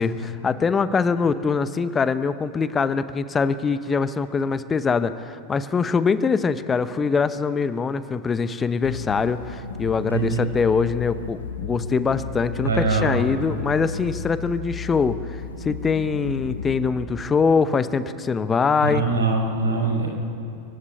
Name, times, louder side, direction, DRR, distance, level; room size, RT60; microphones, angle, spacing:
voice 1, 0.0-15.2 15.6-19.1, left 5 dB, 20° left, 14 dB, 0.8 m, -23 dB
sound 1, 8.8-16.9, left 5 dB, 65° left, 1.8 m, -34 dB
voice 2, 12.6-13.2 18.8-20.1, right 4 dB, 75° right, 1 dB, 5.4 m, -23 dB
27.5 x 16.0 x 9.7 m, 2.6 s
figure-of-eight pair, 90°, 0 cm